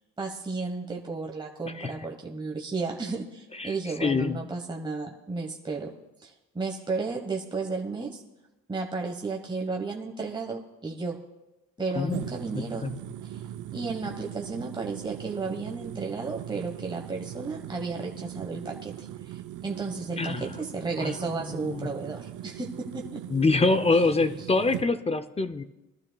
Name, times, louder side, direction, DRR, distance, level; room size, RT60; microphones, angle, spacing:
voice 1, 0.2-5.9 6.2-8.2 8.7-11.2 11.8-12.9 13.2-13.4 13.7-23.2, right 3 dB, 15° right, 1 dB, 1.1 m, -33 dB
voice 2, 4.0-4.4 11.9-12.2 12.5-12.9 20.2-20.4 21.0-21.9 23.3-25.6, left 3 dB, 20° left, 12 dB, 0.5 m, -25 dB
sound 1, 12.1-24.9, right 12 dB, 75° right, 0.6 m, -40 dB
21.0 x 12.0 x 2.3 m, 0.99 s
cardioid pair, 90°, 30 cm